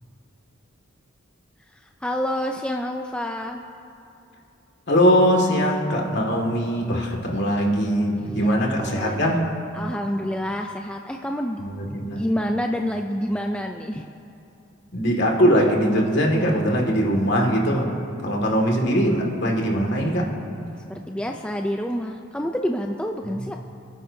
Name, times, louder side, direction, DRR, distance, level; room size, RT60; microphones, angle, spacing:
voice 1, 2.0-3.6 8.2-8.5 8.8-9.2 9.7-11.6 12.1-14.0 20.9-23.5, equal, 5° left, 3 dB, 0.4 m, -28 dB
voice 2, 4.9-9.4 11.6-12.2 14.9-17.9 18.2-20.3 23.4-23.5, equal, 55° left, 0 dB, 2.1 m, -21 dB
28.5 x 10.0 x 2.8 m, 2.8 s
head